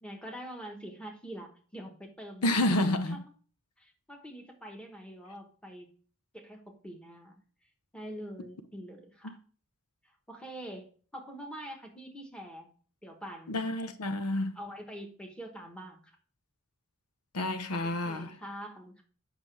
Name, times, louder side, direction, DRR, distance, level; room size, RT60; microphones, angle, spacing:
voice 1, 0.0-3.2 3.8-5.9 6.3-7.4 7.9-9.4 10.0-10.9 11.1-12.7 13.0-13.6 14.5-16.1 17.8-19.0, equal, 5° left, 1.2 m, -45 dB
voice 2, 2.4-3.2 9.2-9.3 13.5-14.6 17.3-18.4, left 1 dB, 85° left, 0.8 m, -29 dB
8.1 x 5.8 x 3.3 m
head